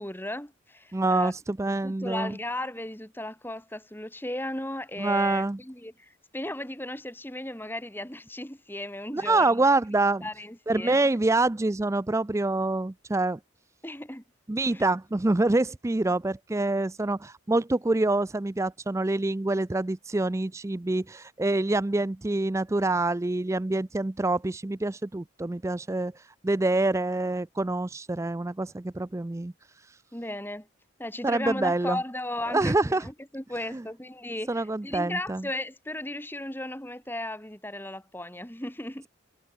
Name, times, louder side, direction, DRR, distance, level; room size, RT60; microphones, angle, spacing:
voice 1, 0.0-1.3 1.7-9.6 10.2-11.1 13.8-14.2 14.7-14.8 30.1-30.7 31.0-39.1, left 1 dB, 10° left, 2.8 m, -36 dB
voice 2, 0.9-2.4 5.0-5.6 9.1-10.3 10.7-13.4 14.5-30.0 31.2-32.0 32.5-33.1 33.7-33.8 34.5-35.4, right 2 dB, 15° right, 0.4 m, -26 dB
head